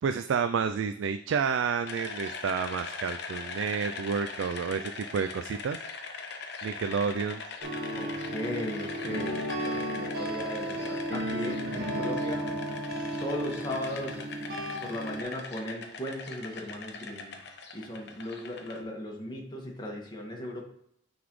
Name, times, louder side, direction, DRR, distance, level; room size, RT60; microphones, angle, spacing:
voice 1, 0.0-5.8 6.6-7.4, right 6 dB, 80° right, 9 dB, 0.4 m, -30 dB
sound 1, 1.8-18.8, left 4 dB, 60° left, 0.9 m, -41 dB
sound 2, 7.6-15.2, right 1 dB, 60° right, 1.9 m, -34 dB
voice 2, 8.0-12.5 13.2-14.3 14.8-17.4 17.7-20.7, left 1 dB, 25° left, -1 dB, 1.6 m, -37 dB
9.3 x 4.0 x 3.1 m, 0.72 s
head